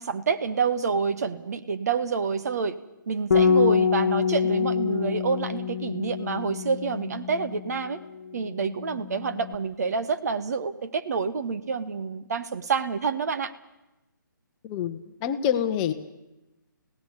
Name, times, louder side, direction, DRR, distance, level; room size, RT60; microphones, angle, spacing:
voice 1, 0.0-2.8 3.1-8.0 8.3-13.5, right 5 dB, 50° right, 11 dB, 1.2 m, -28 dB
Bass guitar, 3.3-8.0 8.3-9.6, left 6 dB, 55° left, 1.3 m, -26 dB
voice 2, 14.6-15.9, left 9 dB, 20° left, 9 dB, 0.9 m, -26 dB
17.5 x 16.5 x 9.9 m, 0.99 s
figure-of-eight pair, 140°, 11 cm